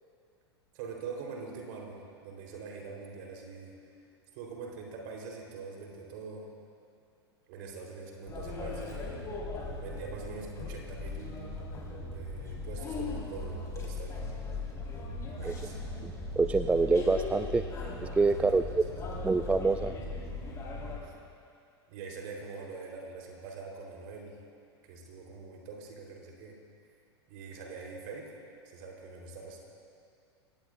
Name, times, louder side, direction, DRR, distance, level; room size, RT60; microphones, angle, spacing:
voice 1, 0.7-3.7 4.3-6.5 7.5-9.2 9.8-11.5 12.1-14.2 15.3-15.8 18.4-18.8 21.0-21.1 21.9-24.4 24.8-26.6 27.3-28.3 28.7-29.6, right 4 dB, 55° right, 0 dB, 3.7 m, -44 dB
sound 1, 8.3-21.0, left 2 dB, 20° left, 4.1 m, -38 dB
voice 2, 16.0-17.6 18.2-18.8 19.2-19.9, right 3 dB, 10° right, 10 dB, 0.4 m, -26 dB
25.5 x 18.0 x 2.5 m, 2.4 s
figure-of-eight pair, 95°, 14 cm